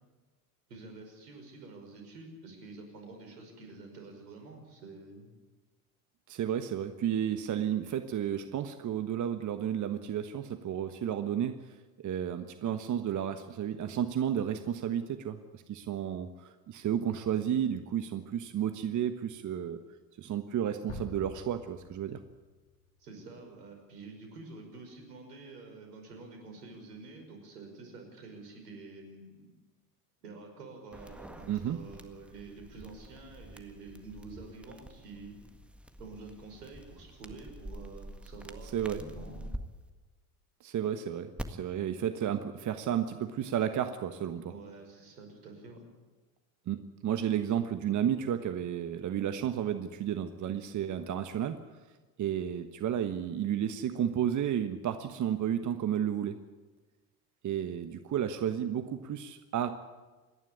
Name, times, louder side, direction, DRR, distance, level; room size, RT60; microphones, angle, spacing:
voice 1, 0.7-5.3 23.0-29.5 30.2-35.4 36.0-39.6 44.5-45.8, right 3 dB, 80° right, 4 dB, 5.6 m, -48 dB
voice 2, 6.3-19.8 20.2-22.2 31.5-31.8 38.7-39.0 40.6-44.5 46.7-51.6 52.2-56.4 57.4-59.7, right 9 dB, 40° right, 9 dB, 1.3 m, -32 dB
sound 1, 20.9-23.8, left 3 dB, 60° left, 4.5 m, -47 dB
sound 2, 30.9-39.6 41.4-41.5, right 1 dB, ahead, 1.7 m, -46 dB
27.0 x 11.0 x 9.9 m, 1.3 s
hypercardioid pair, 70°, 47 cm